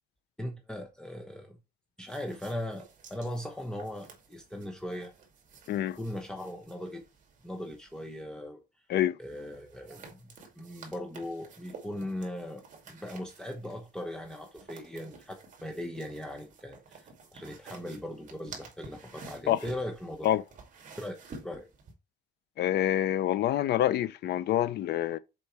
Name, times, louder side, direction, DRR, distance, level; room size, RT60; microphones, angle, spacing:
voice 1, 0.4-1.6 2.0-5.1 6.0-7.0 7.4-8.6 9.2-10.2 10.5-12.6 12.9-20.3 21.0-21.7, left 1 dB, 5° left, 0.9 m, -39 dB
sound 1, 2.1-8.2 9.2-21.9, right 4 dB, 45° right, 2.3 m, -52 dB
voice 2, 5.7-6.0 8.9-9.2 19.5-19.6 20.2-20.4 22.6-25.2, left 12 dB, 75° left, 0.7 m, -26 dB
7.0 x 4.4 x 4.5 m
cardioid pair, 170°, 17 cm